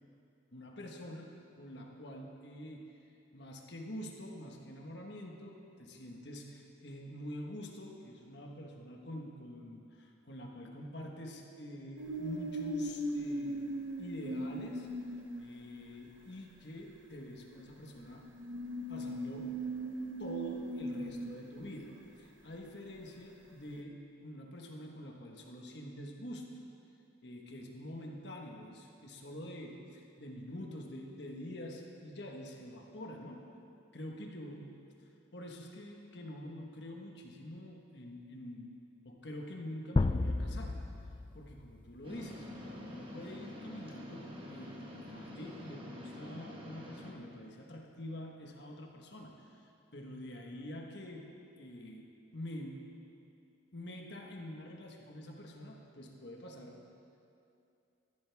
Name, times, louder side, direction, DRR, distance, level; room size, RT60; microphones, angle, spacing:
voice 1, 0.5-1.3 1.6-3.0 3.3-13.6 14.0-14.9 15.4-18.3 18.9-19.6 20.2-26.5 27.2-33.5 33.9-34.8 35.3-38.7 39.0-40.9 41.3-49.6 49.9-52.1 52.3-52.9 53.7-56.8, left 1 dB, 60° left, 1 dB, 1.4 m, -46 dB
sound 1, 12.0-15.7 16.8-16.9 17.6-22.1 23.8-23.9, right 1 dB, 75° right, 0.9 m, -39 dB
sound 2, 40.0-41.9, left 2 dB, 25° left, 0.3 m, -32 dB
sound 3, 42.0-47.1, left 1 dB, 25° right, 1.4 m, -47 dB
15.0 x 13.0 x 3.5 m, 2.6 s
head